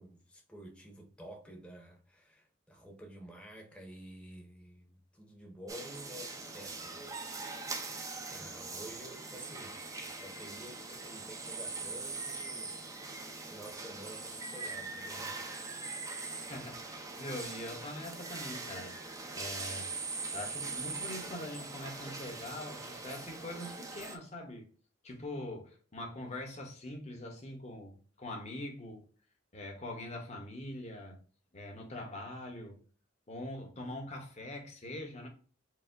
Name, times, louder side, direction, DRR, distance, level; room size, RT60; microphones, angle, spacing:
voice 1, 0.0-7.4 8.3-9.8 10.1-15.7, equal, 5° left, 0.9 m, -51 dB
sound 1, 5.7-24.2, right 3 dB, 20° right, 0.6 m, -42 dB
voice 2, 16.4-19.0 19.3-19.9 20.3-24.7 25.0-29.0 29.5-31.2 31.5-32.9 33.3-35.3, left 1 dB, 35° left, 1.0 m, -43 dB
4.7 x 2.1 x 3.8 m
head